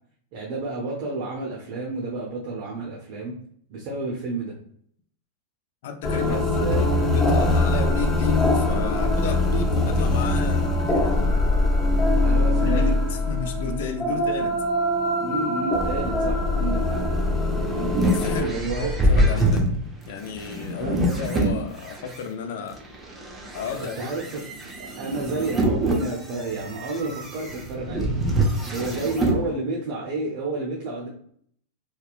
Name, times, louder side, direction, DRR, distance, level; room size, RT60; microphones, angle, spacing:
voice 1, 0.3-3.3 3.7-4.5 6.1-6.8 12.2-13.0 13.6-14.2 15.2-17.0 17.7-17.9 18.3-18.9 20.8-21.0 23.7-24.4 24.8-28.1 28.7-31.1, right 3 dB, 50° right, -2 dB, 0.7 m, -30 dB
voice 2, 5.8-11.4 12.2-14.5 18.1-19.7 20.1-22.8 23.5-24.1, left 6 dB, 70° left, 6 dB, 0.4 m, -33 dB
sound 1, 6.0-18.4, left 1 dB, 25° left, 0.6 m, -22 dB
sound 2, 17.1-22.2 22.8-29.4, right 1 dB, 15° right, 0.7 m, -25 dB
2.7 x 2.2 x 2.4 m, 0.64 s
hypercardioid pair, 120°, 0 cm